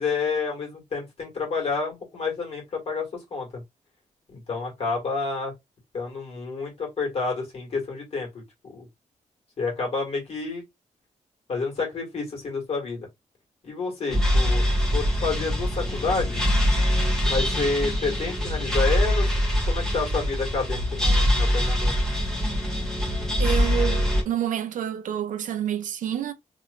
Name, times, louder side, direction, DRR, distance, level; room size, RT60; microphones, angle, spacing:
voice 1, 0.0-3.6 4.3-5.5 5.9-8.9 9.6-10.6 11.5-13.1 13.6-14.7 14.9-16.4 17.2-21.9, left 4 dB, 50° left, 1.9 m, -29 dB
sound 1, 14.1-24.2, equal, 5° left, 1.2 m, -23 dB
voice 2, 23.4-26.3, right 10 dB, 85° right, 0.5 m, -28 dB
3.1 x 3.0 x 2.5 m
wide cardioid pair, 165°, 13 cm